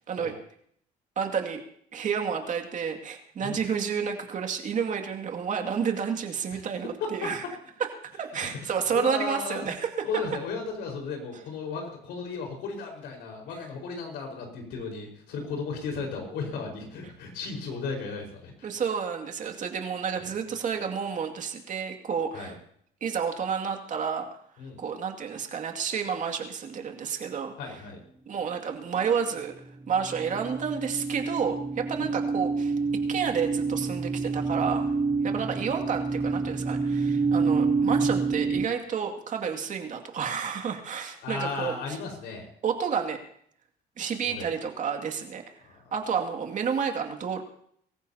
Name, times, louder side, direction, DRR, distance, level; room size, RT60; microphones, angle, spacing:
voice 1, 1.2-1.6 1.9-7.4 8.2-10.1 18.6-22.6 23.0-24.3 24.8-27.8 28.3-29.5 29.9-32.7 33.1-34.9 35.2-42.0 42.6-43.2 44.0-45.4 45.9-47.4, right 6 dB, 45° right, 4 dB, 2.3 m, -30 dB
voice 2, 7.0-7.3 8.4-8.5 8.9-9.7 10.0-18.7 22.3-22.5 24.6-24.8 27.6-28.0 32.0-32.1 35.2-35.4 37.4-37.5 41.2-42.5 44.2-44.5 45.6-45.9, left 4 dB, 80° left, 2 dB, 4.9 m, -35 dB
sound 1, 28.7-29.5 29.8-38.7, right 4 dB, 15° right, 0.9 m, -28 dB
24.0 x 15.0 x 2.9 m, 0.66 s
cardioid pair, 110°, 17 cm